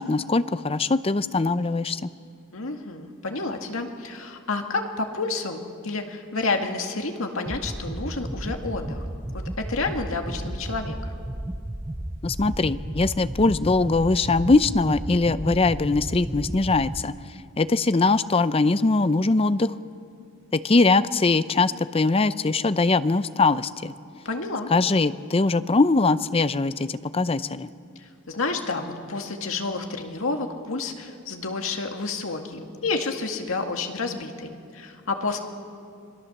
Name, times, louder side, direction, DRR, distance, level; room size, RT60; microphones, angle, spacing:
voice 1, 0.0-2.1 12.2-17.1 17.6-19.7 20.5-23.9 24.7-27.7, left 3 dB, 25° left, 14 dB, 0.5 m, -22 dB
voice 2, 2.5-9.1 9.3-11.2 24.3-24.7 28.0-35.4, left 3 dB, 70° left, 4 dB, 2.1 m, -30 dB
sound 1, 7.5-17.0, right 1 dB, 15° right, 0.6 m, -33 dB
26.5 x 21.5 x 7.2 m, 2.3 s
head